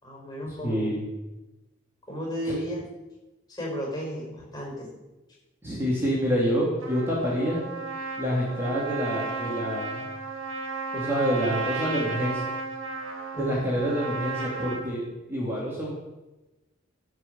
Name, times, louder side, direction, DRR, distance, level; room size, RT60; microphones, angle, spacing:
voice 1, 0.0-1.0 2.1-2.8 3.5-4.9 13.3-13.7, equal, 20° left, -2 dB, 5.1 m, -33 dB
voice 2, 0.6-1.1 2.5-2.6 5.6-7.6 8.2-10.1 10.9-12.4 13.4-15.0 15.3-15.9, equal, 10° right, -6 dB, 2.7 m, -27 dB
Trumpet, 6.8-14.9, right 4 dB, 70° right, 2.2 m, -34 dB
16.5 x 6.2 x 7.0 m, 1.0 s
head